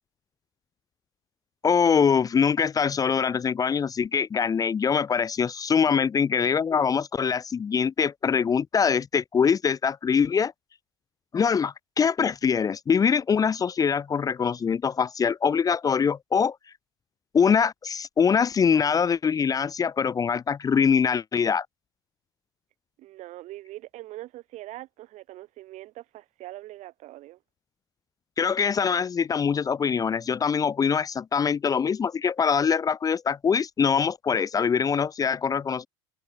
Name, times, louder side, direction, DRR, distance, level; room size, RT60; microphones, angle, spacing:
voice 1, 1.6-10.5 11.3-16.6 17.3-21.7 28.4-35.9, left 6 dB, 25° left, 0.8 m, -23 dB
voice 2, 23.0-27.4, right 16 dB, 55° right, 6.9 m, -42 dB
hypercardioid pair, 90°, 14 cm